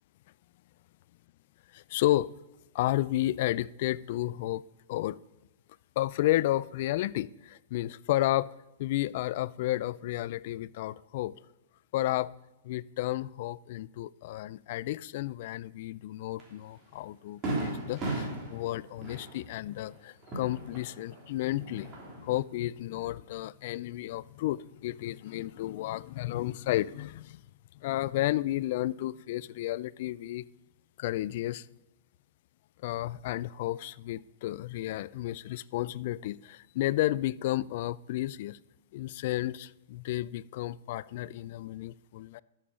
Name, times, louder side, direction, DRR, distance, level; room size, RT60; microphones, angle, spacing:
voice 1, 1.7-2.3 2.7-4.6 4.9-5.2 6.0-11.4 11.9-12.3 12.6-27.4 27.7-30.4 31.0-31.7 32.8-38.6 38.9-42.4, left 15 dB, 55° left, 0.3 m, -32 dB
Fireworks, 16.4-16.5 16.9-17.0 17.4-21.2 21.5-22.4, right 2 dB, 30° right, 3.2 m, -36 dB
11.5 x 7.2 x 5.2 m
hypercardioid pair, 130°, 0 cm